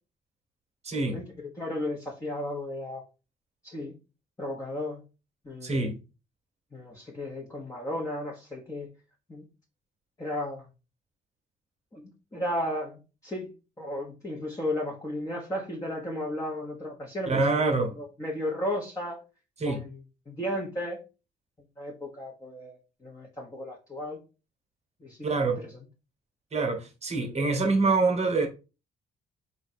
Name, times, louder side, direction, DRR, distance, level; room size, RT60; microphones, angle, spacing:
voice 1, 0.8-1.2 5.6-6.0 17.3-17.9 19.6-19.8 25.2-25.6 26.5-28.5, right 3 dB, 35° right, 1.2 m, -25 dB
voice 2, 1.6-3.0 3.6-3.9 4.4-5.0 5.4-5.9 6.7-8.9 9.3-9.4 10.2-10.7 11.9-19.2 19.6-20.0 20.3-21.0 21.8-24.2 25.0-25.2 25.6-25.8, left 1 dB, 15° left, 1.1 m, -34 dB
3.8 x 2.5 x 4.2 m
cardioid pair, 90°, 20 cm